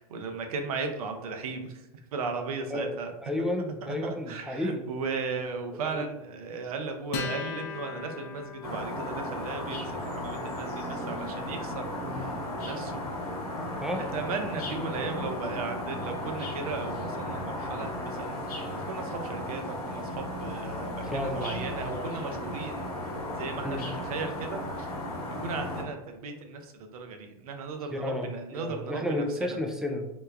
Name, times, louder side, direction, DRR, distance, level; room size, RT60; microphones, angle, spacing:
voice 1, 0.0-1.8 2.1-3.1 4.0-13.4 13.9-22.9 23.3-24.9 25.3-29.6, right 4 dB, 75° right, 5 dB, 0.6 m, -36 dB
voice 2, 3.2-4.8 5.8-6.0 12.0-12.2 13.8-14.1 21.1-21.6 21.9-22.1 23.6-23.9 27.9-30.1, left 1 dB, 5° right, 3 dB, 0.4 m, -32 dB
Acoustic guitar, 7.1-14.0, left 5 dB, 50° left, 0.7 m, -41 dB
sound 1, 8.6-25.8, left 1 dB, 85° left, 1.1 m, -35 dB
3.0 x 2.3 x 3.4 m, 0.95 s
hypercardioid pair, 120°, 19 cm